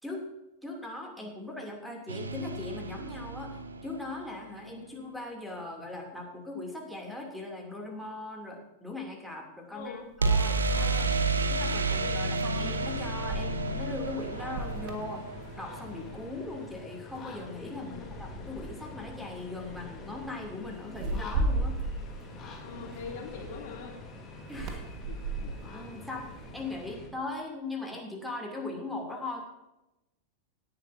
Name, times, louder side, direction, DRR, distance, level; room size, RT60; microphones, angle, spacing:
voice 1, 0.6-11.1 11.5-15.2 15.6-21.8 24.5-24.8 25.7-29.4, left 2 dB, ahead, 1 dB, 2.9 m, -39 dB
sound 1, 2.1-4.1 10.2-16.0, right 3 dB, 75° right, 1.1 m, -30 dB
voice 2, 9.7-10.0 10.6-11.2 11.9-12.2 17.8-18.2 22.6-24.0 25.1-25.5, left 5 dB, 50° left, 1 dB, 2.8 m, -43 dB
sound 2, 10.1-10.2 12.4-16.0 16.4-16.7 17.1-17.8 18.6-18.8 19.2-19.5 20.9-23.5 24.4-26.8, right 2 dB, 40° right, 1.6 m, -36 dB
sound 3, 12.6-27.1, left 2 dB, 25° left, 3.1 m, -45 dB
17.5 x 10.0 x 2.8 m, 0.95 s
figure-of-eight pair, 90°, 0 cm